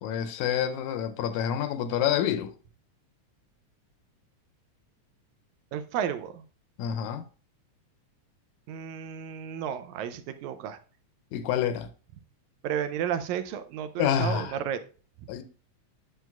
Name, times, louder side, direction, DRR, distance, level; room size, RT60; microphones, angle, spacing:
voice 1, 0.0-2.5 6.8-7.2 11.3-11.9 14.0-14.6 15.3-15.4, left 9 dB, 80° left, 1.8 m, -28 dB
voice 2, 5.7-6.4 8.7-10.8 12.6-14.8, right 9 dB, 80° right, 1.9 m, -32 dB
9.0 x 6.4 x 2.3 m
omnidirectional pair, 3.4 m